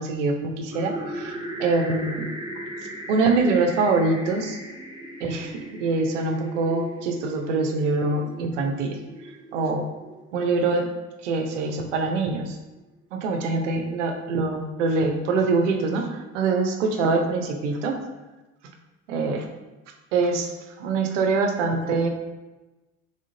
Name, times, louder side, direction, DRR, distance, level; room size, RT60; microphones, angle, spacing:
voice 1, 0.0-1.3 1.6-2.3 3.1-4.6 5.2-9.0 9.2-9.8 10.3-10.9 11.2-12.6 13.1-17.9 19.1-19.5 20.1-20.5 20.8-22.1, right 3 dB, 75° right, 3 dB, 0.6 m, -24 dB
sound 1, 0.7-10.6, right 1 dB, 10° right, 1.1 m, -38 dB
3.6 x 3.6 x 2.7 m, 1.1 s
figure-of-eight pair, 50°, 37 cm